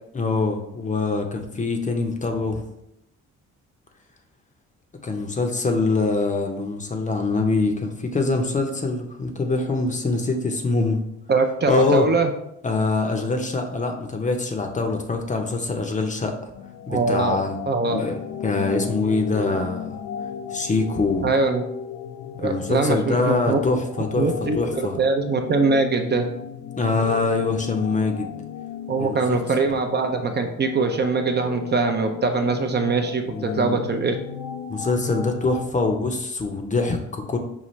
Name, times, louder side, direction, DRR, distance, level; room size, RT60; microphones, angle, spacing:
voice 1, 0.1-2.6 5.0-11.0 11.7-12.1 12.6-16.5 16.9-17.6 17.8-19.9 20.5-21.3 22.4-25.0 26.8-28.3 29.0-29.7 33.3-33.8 34.7-37.4, left 3 dB, 25° left, 4 dB, 0.6 m, -24 dB
voice 2, 11.3-12.3 16.9-18.0 21.2-21.6 22.4-23.6 24.2-26.3 28.9-34.2, right 4 dB, 35° right, 5 dB, 0.4 m, -22 dB
sound 1, 16.5-35.7, left 8 dB, 85° left, 0.5 m, -35 dB
5.5 x 2.4 x 3.0 m, 0.81 s
cardioid pair, 90°, 30 cm